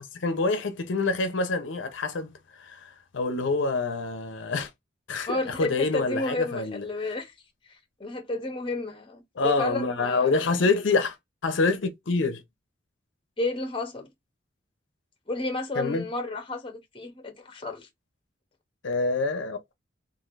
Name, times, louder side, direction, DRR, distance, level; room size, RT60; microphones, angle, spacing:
voice 1, 0.2-2.3 2.6-4.7 5.1-6.8 9.4-11.2 11.4-12.4 15.8-16.1 18.8-19.6, left 3 dB, 70° left, 0.6 m, -26 dB
voice 2, 5.3-7.3 7.7-10.3 13.4-14.1 15.3-17.9, left 2 dB, 25° left, 0.8 m, -32 dB
3.2 x 2.5 x 2.5 m
head